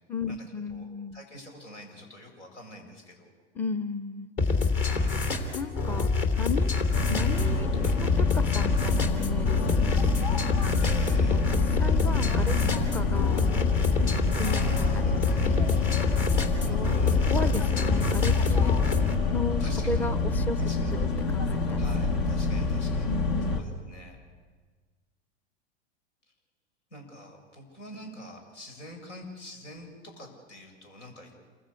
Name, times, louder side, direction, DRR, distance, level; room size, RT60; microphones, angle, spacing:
voice 1, 0.1-1.2 3.6-4.3 5.5-6.1 6.4-6.7 7.1-7.7 8.0-10.6 11.3-13.5 14.4-15.1 15.4-15.6 16.7-17.0 17.3-18.7 19.3-19.6 19.9-20.6 20.9-21.9 23.0-23.7, left 3 dB, 5° left, 14 dB, 0.6 m, -35 dB
voice 2, 0.7-3.3 4.8-5.2 7.8-8.0 10.8-11.5 14.1-16.0 16.6-17.5 19.6-20.1 20.6-20.9 21.8-23.2 23.5-24.2 26.9-31.3, left 1 dB, 80° left, 2 dB, 7.5 m, -45 dB
sound 1, 4.4-19.1, left 4 dB, 35° left, 3.1 m, -26 dB
sound 2, 6.9-23.6, left 4 dB, 60° left, 2.9 m, -27 dB
28.0 x 16.0 x 8.3 m, 1.5 s
hypercardioid pair, 105°, 35 cm